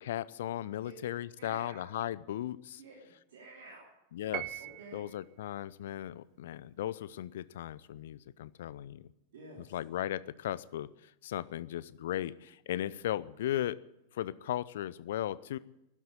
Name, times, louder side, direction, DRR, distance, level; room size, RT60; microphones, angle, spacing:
voice 1, 0.0-2.8 4.1-4.6 4.9-9.1 9.6-13.8 14.1-15.6, left 12 dB, 60° left, 19 dB, 0.6 m, -37 dB
voice 2, 1.4-1.9 2.8-3.9 4.6-5.1 9.3-9.7, right 2 dB, 60° right, -3 dB, 3.3 m, -51 dB
Piano, 4.3-5.2, right 16 dB, 40° right, 0.5 m, -40 dB
12.0 x 12.0 x 9.7 m, 0.89 s
figure-of-eight pair, 90°, 0 cm